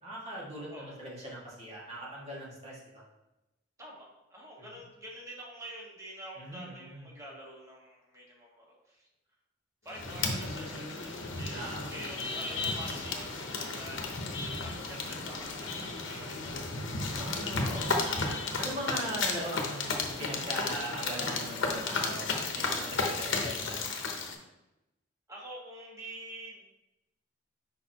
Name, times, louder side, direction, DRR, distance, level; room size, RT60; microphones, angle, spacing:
voice 1, 0.0-3.0 6.4-7.1 11.5-11.9 17.1-19.9 20.2-24.0, right 1 dB, 35° right, -6 dB, 2.0 m, -40 dB
voice 2, 3.8-9.1 9.8-16.7 25.3-26.6, right 1 dB, 15° right, -3 dB, 1.5 m, -47 dB
sound 1, 9.9-24.3, left 3 dB, 70° left, 0.9 m, -34 dB
6.3 x 5.2 x 2.9 m, 0.95 s
head